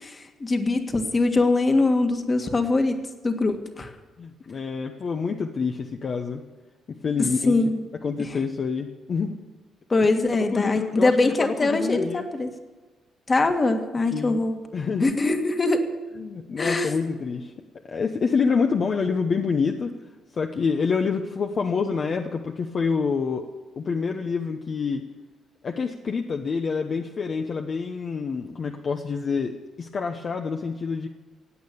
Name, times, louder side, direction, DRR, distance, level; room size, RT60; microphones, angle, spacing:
voice 1, 0.0-3.0 3.2-3.9 7.4-7.8 9.9-12.5 13.3-14.6 15.0-15.8 16.6-16.9, left 2 dB, 30° left, 6 dB, 1.8 m, -22 dB
voice 2, 4.2-6.4 6.9-7.6 8.0-9.4 10.0-10.1 10.5-12.3 14.1-14.4 14.7-15.2 16.2-17.5 17.9-20.0 20.3-23.5 23.8-25.0 25.6-31.1, left 5 dB, 45° left, 4 dB, 1.0 m, -27 dB
16.5 x 8.8 x 8.5 m, 1.3 s
cardioid pair, 90°, 0 cm